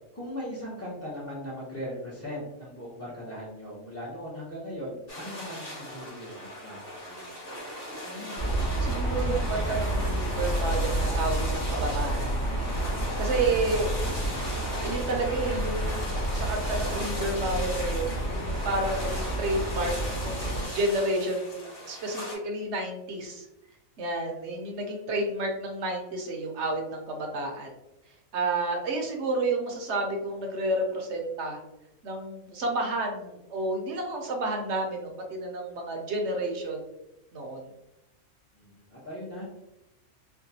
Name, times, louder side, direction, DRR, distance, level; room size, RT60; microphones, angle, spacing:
voice 1, 0.1-7.4 13.5-14.3 38.5-39.6, equal, 15° left, -7 dB, 0.6 m, -39 dB
sound 1, 5.1-22.3, equal, 45° left, 1.6 m, -39 dB
voice 2, 8.0-8.4 8.8-12.4 13.2-13.9 14.8-19.9 20.2-23.5 24.0-27.7 28.3-31.6 32.0-36.8 37.3-37.7, right 2 dB, 60° right, 2 dB, 0.9 m, -30 dB
sound 2, 8.4-20.7, right 1 dB, 75° left, 2.0 m, -29 dB
4.4 x 2.2 x 2.7 m, 0.89 s
omnidirectional pair, 1.4 m